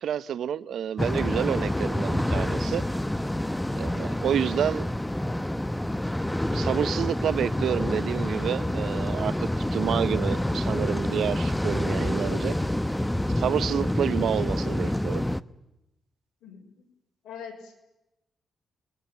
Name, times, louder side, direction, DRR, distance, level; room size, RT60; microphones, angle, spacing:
voice 1, 0.0-2.9 3.8-4.9 6.5-12.6 13.4-15.2, right 9 dB, 75° right, 0.9 m, -29 dB
sound 1, 1.0-15.4, left 1 dB, 10° left, 1.0 m, -27 dB
voice 2, 16.4-16.8 17.2-17.8, left 7 dB, 85° left, 5.7 m, -43 dB
29.0 x 21.5 x 9.3 m
cardioid pair, 70°, 0 cm